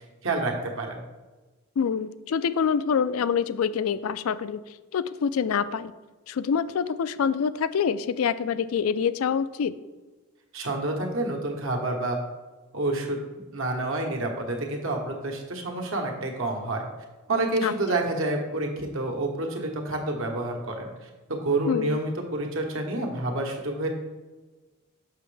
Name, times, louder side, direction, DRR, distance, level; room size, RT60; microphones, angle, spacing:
voice 1, 0.2-1.0 10.5-12.2 12.7-13.2 13.5-16.8 17.3-23.9, right 2 dB, 70° right, 1 dB, 1.2 m, -28 dB
voice 2, 1.8-4.6 4.9-5.9 6.3-9.7 17.6-18.0 21.7-22.0, left 6 dB, 85° left, 15 dB, 0.4 m, -26 dB
6.6 x 6.1 x 3.3 m, 1.2 s
head